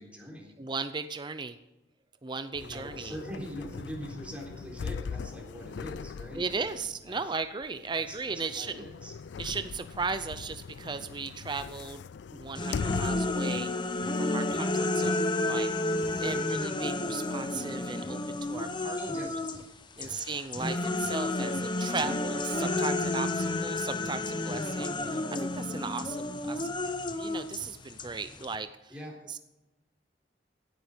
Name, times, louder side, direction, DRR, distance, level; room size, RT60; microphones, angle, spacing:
voice 1, 0.0-0.5 2.6-6.8 7.0-7.2 8.0-9.1 16.2-16.5 19.0-20.2 28.9-29.2, equal, 5° right, -1 dB, 3.8 m, -43 dB
voice 2, 0.6-1.6 2.2-3.2 6.3-8.9 9.4-12.0 12.3-19.4 20.0-26.7 27.1-28.9 29.3-29.4, right 4 dB, 25° right, 11 dB, 0.5 m, -36 dB
sound 1, 2.5-13.5 14.0-14.1 15.5-16.4, left 5 dB, 70° left, 0.4 m, -41 dB
sound 2, 12.6-19.6 20.0-28.6, left 2 dB, 25° left, 0.9 m, -31 dB
16.5 x 10.5 x 5.1 m, 1.0 s
head